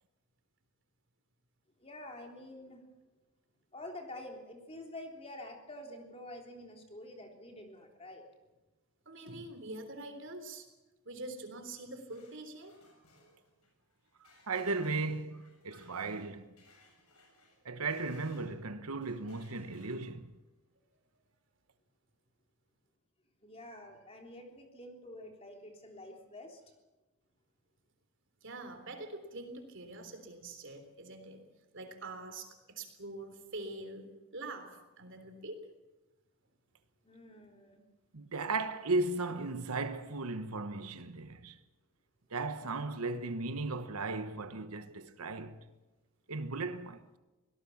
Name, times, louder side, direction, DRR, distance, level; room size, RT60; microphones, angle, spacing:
voice 1, 1.8-2.8 3.7-8.2 23.4-26.6 37.0-37.8, left 1 dB, 25° left, 3.5 m, -48 dB
voice 2, 9.1-10.7 11.0-12.8 28.4-31.4 31.7-35.7, right 2 dB, 55° right, 3.5 m, -45 dB
sound 1, 11.6-18.6 19.0-20.4, left 2 dB, 85° left, 7.3 m, -64 dB
voice 3, 14.5-16.5 17.6-20.3 38.1-41.6 42.3-45.6 46.3-47.0, right 3 dB, 80° right, 1.1 m, -36 dB
24.5 x 18.0 x 7.2 m
head